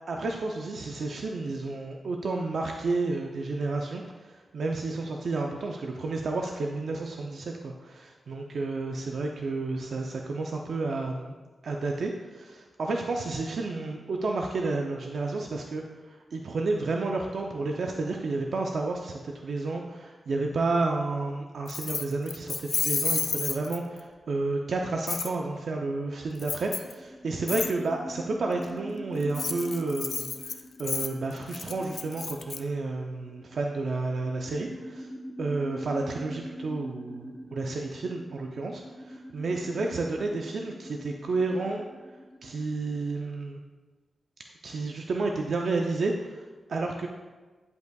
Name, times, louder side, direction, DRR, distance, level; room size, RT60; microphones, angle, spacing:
voice 1, 0.1-11.3 11.6-35.1 35.4-41.8 42.4-43.6 44.6-46.4 46.7-47.1, right 3 dB, 75° right, 1 dB, 0.5 m, -31 dB
Keys jangling, 21.7-24.0 25.1-25.3 26.4-26.9 27.5-27.7 29.2-32.6, left 5 dB, 70° left, 0.4 m, -31 dB
sound 1, 26.8-42.6, equal, 10° left, 0.8 m, -44 dB
10.5 x 5.4 x 2.3 m, 1.3 s
cardioid pair, 80°, 0 cm